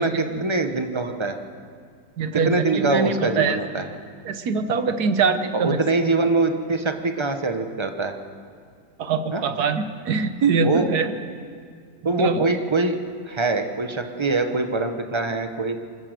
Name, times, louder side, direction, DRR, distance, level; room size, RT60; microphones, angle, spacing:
voice 1, 0.0-1.4 2.3-3.9 5.5-8.1 9.3-9.4 10.6-10.9 12.0-13.0 13.3-15.8, right 3 dB, 20° right, 6 dB, 0.7 m, -23 dB
voice 2, 2.2-3.6 4.2-5.8 9.0-11.1 12.2-12.4, right 5 dB, 60° right, 9 dB, 1.5 m, -23 dB
24.5 x 13.5 x 7.8 m, 2.2 s
omnidirectional pair, 2.0 m